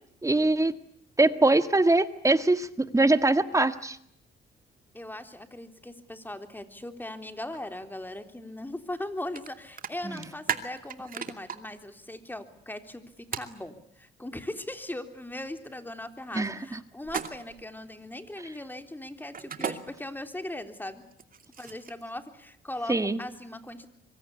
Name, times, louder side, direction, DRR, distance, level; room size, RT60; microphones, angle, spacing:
voice 1, 0.2-0.7 1.2-4.0 10.0-10.2 16.3-16.8 22.9-23.2, right 2 dB, 15° right, 11 dB, 1.8 m, -23 dB
voice 2, 4.9-21.0 21.6-23.9, left 1 dB, 10° left, 7 dB, 3.5 m, -39 dB
sound 1, 9.3-9.5 9.8-11.6 13.3-13.5 17.0-17.6 19.3-19.7 21.1-22.0, right 7 dB, 45° right, 2.5 m, -34 dB
25.0 x 24.0 x 8.4 m, 0.69 s
cardioid pair, 90°, 20 cm